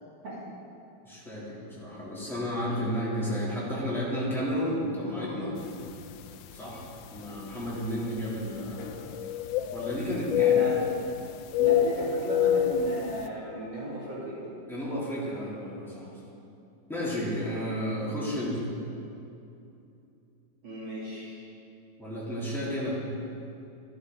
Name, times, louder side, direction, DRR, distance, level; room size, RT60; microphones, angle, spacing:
voice 1, 1.0-5.6 6.5-6.8 7.1-9.1 9.7-10.6 14.7-16.1 16.9-18.7 22.0-23.0, equal, ahead, -8 dB, 3.1 m, -32 dB
sound 1, 5.9-6.0 6.8-6.9 8.8-10.0 10.3-11.1 11.5-12.9, left 10 dB, 85° left, 1.3 m, -25 dB
voice 2, 10.4-10.8 11.6-14.4 20.6-21.5, right 1 dB, 75° right, -7 dB, 3.4 m, -35 dB
13.0 x 12.5 x 3.9 m, 2.7 s
omnidirectional pair, 2.0 m